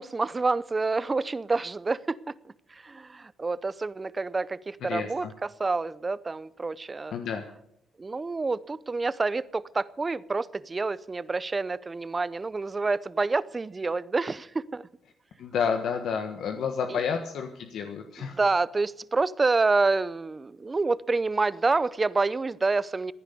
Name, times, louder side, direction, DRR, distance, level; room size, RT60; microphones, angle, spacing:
voice 1, 0.0-7.1 8.0-14.9 16.9-17.0 18.2-23.1, right 3 dB, 25° right, 0.6 m, -28 dB
voice 2, 4.9-5.3 7.1-7.4 15.4-18.4, left 6 dB, 70° left, 1.4 m, -30 dB
16.0 x 10.0 x 6.8 m
cardioid pair, 90°, 0 cm